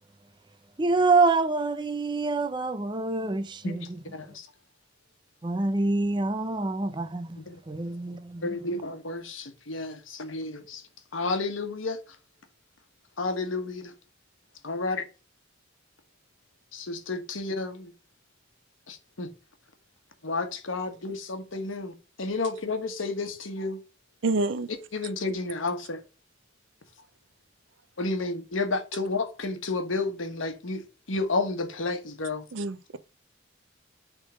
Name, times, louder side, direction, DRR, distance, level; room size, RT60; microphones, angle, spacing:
voice 1, 0.8-4.0 4.3-4.4 5.4-7.4 7.7-8.5, right 3 dB, 25° right, 0.5 m, -26 dB
voice 2, 4.1-4.5 7.4-7.6 8.4-10.8 11.1-12.0 13.2-13.9 14.6-15.0 16.7-17.9 18.9-19.3 20.2-23.8 24.9-26.0 28.0-30.8 31.1-32.4, left 3 dB, 90° left, 1.3 m, -31 dB
voice 3, 24.2-24.7 32.5-33.0, right 3 dB, 70° right, 0.5 m, -27 dB
6.3 x 3.7 x 5.0 m
head